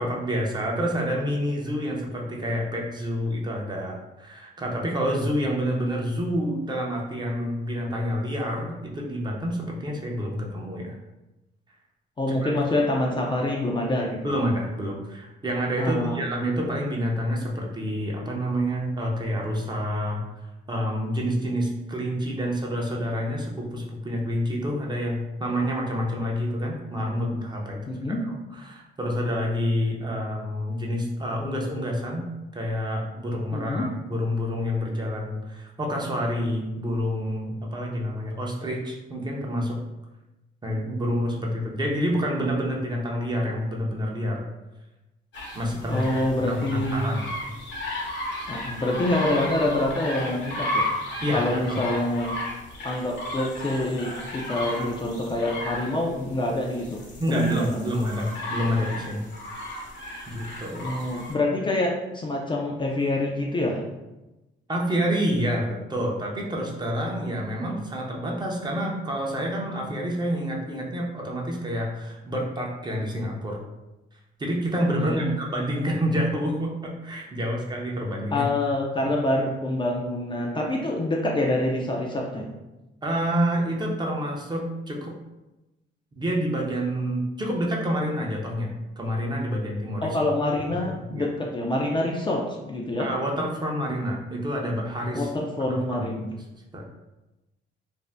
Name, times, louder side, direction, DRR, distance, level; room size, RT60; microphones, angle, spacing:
voice 1, 0.0-10.9 12.4-12.5 14.2-20.2 20.7-27.8 28.6-32.2 32.5-39.8 40.6-44.4 45.5-46.1 46.5-47.4 51.2-51.8 57.2-59.2 60.3-61.0 64.7-73.6 74.4-78.4 83.0-85.1 86.2-90.2 90.8-91.3 93.0-95.3 95.7-96.1 96.7-96.8, equal, 20° right, -1 dB, 0.6 m, -28 dB
voice 2, 12.2-14.4 15.8-16.2 27.9-28.2 33.5-33.9 45.9-47.0 48.5-50.9 51.3-52.3 52.8-57.0 57.3-57.9 60.8-63.8 75.0-75.4 78.3-82.5 90.0-93.1 95.1-96.3, left 1 dB, 25° left, -1 dB, 0.4 m, -26 dB
sound 1, 45.3-61.3, left 1 dB, 65° left, 0.8 m, -34 dB
2.6 x 2.0 x 3.3 m, 1.0 s
cardioid pair, 90°, 20 cm